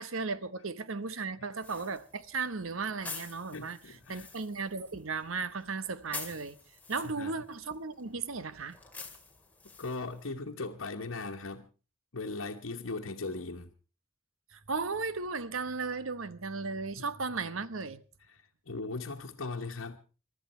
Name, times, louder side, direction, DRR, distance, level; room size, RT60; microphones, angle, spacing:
voice 1, 0.0-6.6 6.9-8.8 14.5-18.0, right 4 dB, 85° right, 1.0 m, -36 dB
sound 1, 1.6-10.3, left 4 dB, 10° left, 2.2 m, -48 dB
voice 2, 3.5-4.3 7.0-7.3 9.8-11.7 12.1-13.7 17.0-17.1 18.3-20.0, left 3 dB, 75° left, 1.3 m, -38 dB
22.5 x 12.5 x 4.4 m
head